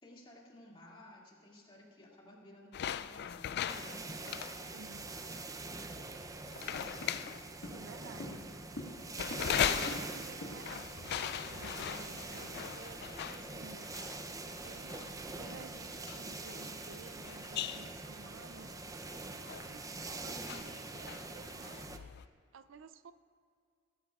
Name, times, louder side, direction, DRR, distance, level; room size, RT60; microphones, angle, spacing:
voice 1, 0.0-4.1 20.1-20.6, left 1 dB, 25° left, -4 dB, 2.3 m, -55 dB
sound 1, 2.7-22.3, left 9 dB, 55° left, 0.3 m, -41 dB
sound 2, 3.7-22.0, right 3 dB, 15° right, 0.6 m, -44 dB
voice 2, 4.7-5.1 7.6-8.5 9.4-13.9 14.6-18.7 19.6-22.1 22.5-23.1, right 5 dB, 65° right, 12 dB, 0.4 m, -54 dB
Walk footsteps, 6.7-6.8 7.0-7.3 7.6-12.2, left 1 dB, 70° left, 1.7 m, -47 dB
19.0 x 13.5 x 2.4 m, 2.2 s
head